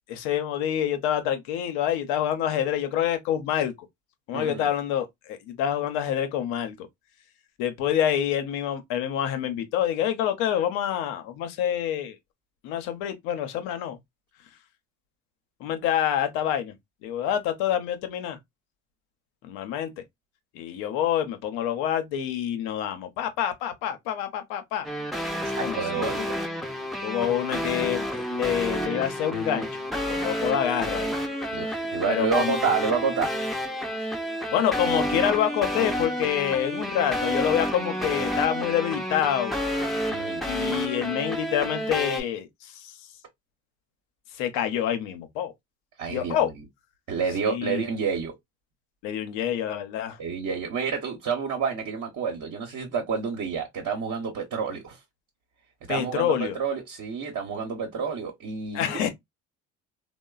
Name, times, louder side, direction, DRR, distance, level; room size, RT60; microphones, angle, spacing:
voice 1, 0.1-3.7 4.3-6.9 7.6-12.2 12.6-14.0 15.6-16.7 17.0-18.4 19.4-19.9 20.5-24.9 25.6-26.3 27.0-29.8 30.1-31.1 32.1-32.6 34.5-39.6 40.4-43.0 44.3-45.5 46.1-46.5 47.4-47.9 49.0-50.2 55.9-56.5 58.7-59.1, left 10 dB, 80° left, 0.7 m, -27 dB
voice 2, 4.3-4.7 25.5-26.3 31.5-33.3 40.1-40.4 46.0-46.5 47.1-48.3 50.2-55.0 55.9-59.1, right 6 dB, 50° right, 0.9 m, -29 dB
sound 1, 24.8-42.2, equal, ahead, 0.6 m, -30 dB
2.9 x 2.1 x 2.3 m
hypercardioid pair, 65°, 37 cm